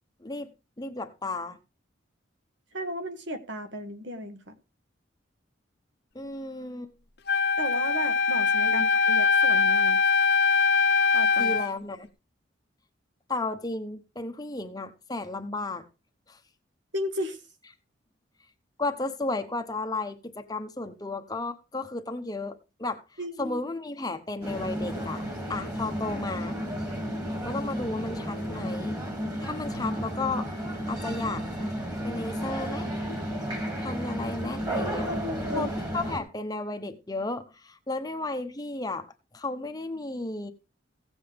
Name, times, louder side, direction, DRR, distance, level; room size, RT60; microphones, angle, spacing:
voice 1, 0.8-1.6 6.1-6.9 8.7-8.9 11.4-12.1 13.3-15.9 16.3-16.4 18.8-25.2 25.5-26.6 27.4-29.0 29.4-30.5 30.9-31.7 32.0-32.9 33.8-35.1 35.5-35.7 35.9-39.1 39.3-40.5, left 2 dB, 20° left, 0.8 m, -33 dB
voice 2, 2.7-4.5 7.6-10.0 11.1-11.6 16.9-17.4 23.2-23.6 35.1-35.7, equal, 65° right, 1.6 m, -34 dB
Wind instrument woodwind instrument, 7.3-11.7, left 5 dB, 55° left, 0.8 m, -22 dB
sound 1, 24.4-36.2, equal, 20° right, 2.3 m, -32 dB
16.0 x 7.8 x 3.4 m
head